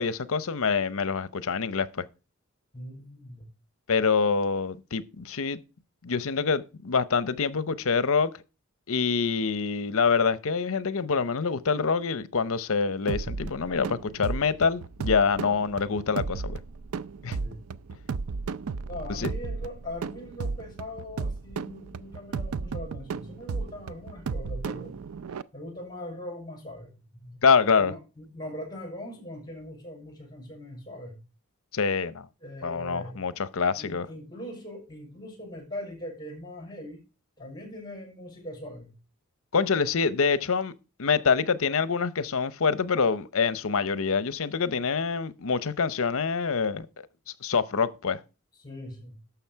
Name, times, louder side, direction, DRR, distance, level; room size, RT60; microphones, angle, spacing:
voice 1, 0.0-2.0 3.9-5.6 6.0-8.3 8.9-16.6 17.2-17.4 19.1-19.3 27.4-27.9 31.7-32.3 32.6-34.1 39.5-40.7 41.0-46.9 47.4-48.2, left 5 dB, 65° left, 0.7 m, -26 dB
voice 2, 2.7-3.4 17.4-17.6 18.9-25.0 25.3-27.4 27.8-31.2 32.4-33.2 33.7-37.0 37.4-38.9 48.6-49.2, left 1 dB, 20° left, 5.8 m, -41 dB
sound 1, 13.1-25.4, right 4 dB, 70° right, 0.5 m, -34 dB
11.5 x 7.1 x 4.6 m
head